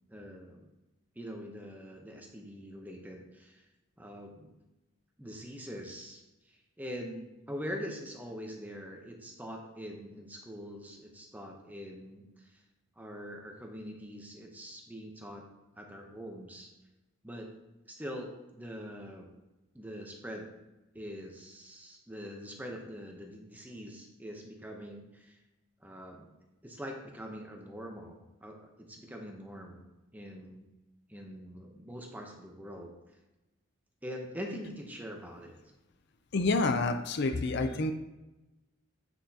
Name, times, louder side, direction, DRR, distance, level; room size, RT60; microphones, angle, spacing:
voice 1, 0.1-0.7 1.2-3.6 4.0-4.5 5.2-12.6 13.0-15.4 15.8-16.7 17.2-17.5 17.9-19.3 19.7-20.5 20.9-25.4 25.8-26.3 26.6-29.9 30.1-30.6 31.1-32.9 34.0-35.5, equal, 10° right, 1 dB, 0.8 m, -43 dB
voice 2, 36.3-37.9, left 3 dB, 55° left, 8 dB, 0.5 m, -28 dB
8.9 x 5.9 x 2.8 m, 1.0 s
head